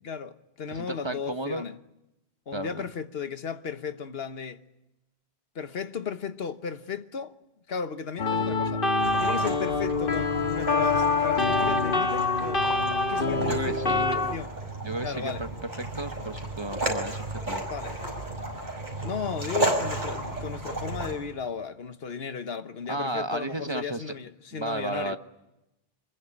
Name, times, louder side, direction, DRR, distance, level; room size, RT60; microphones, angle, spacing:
voice 1, 0.0-1.8 2.5-4.6 5.5-7.3 7.7-8.8 9.2-12.6 13.1-14.6 15.0-15.4 17.7-18.0 19.0-25.2, left 6 dB, 75° left, 1.4 m, -35 dB
voice 2, 0.7-1.6 2.5-2.9 13.4-14.1 14.8-15.5 15.8-17.7 22.9-24.0 24.5-25.2, right 2 dB, 25° right, 1.2 m, -33 dB
sound 1, 8.2-14.4, left 3 dB, 55° left, 1.7 m, -25 dB
sound 2, 9.0-21.2, right 2 dB, 50° right, 5.7 m, -33 dB
25.5 x 21.5 x 10.0 m
omnidirectional pair, 1.0 m